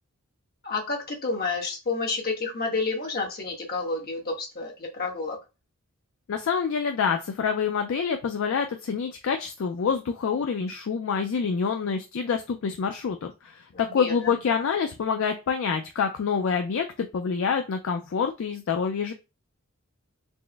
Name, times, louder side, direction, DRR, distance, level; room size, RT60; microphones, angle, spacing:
voice 1, 0.6-5.4 13.7-14.3, left 3 dB, 45° left, 0 dB, 1.1 m, -30 dB
voice 2, 6.3-19.1, left 6 dB, 60° left, 5 dB, 0.4 m, -27 dB
4.3 x 2.0 x 3.3 m, 0.28 s
head